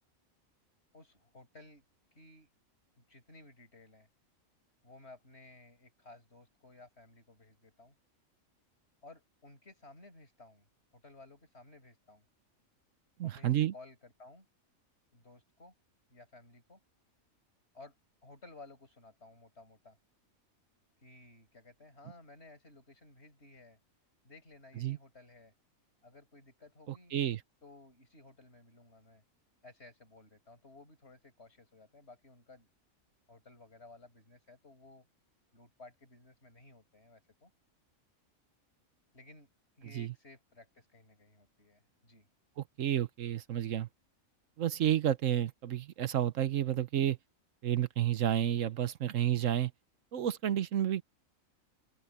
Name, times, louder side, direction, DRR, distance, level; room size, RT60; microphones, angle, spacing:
voice 1, 0.9-1.8 2.1-2.5 3.0-4.1 4.8-7.9 9.0-10.7 10.9-12.2 13.2-14.5 15.1-15.7 16.1-16.8 17.7-17.9 18.2-20.0 21.0-23.8 24.2-25.5 26.0-27.1 27.6-29.2 29.6-32.7 33.3-35.1 35.5-37.5 39.1-39.5 39.8-42.3, left 2 dB, 50° left, 6.5 m, -56 dB
voice 2, 13.2-13.7 24.8-25.0 27.1-27.4 39.9-40.1 42.8-43.9 44.6-47.2 47.6-49.7 50.1-51.0, right 11 dB, 70° right, 1.1 m, -30 dB
open air
omnidirectional pair, 1.4 m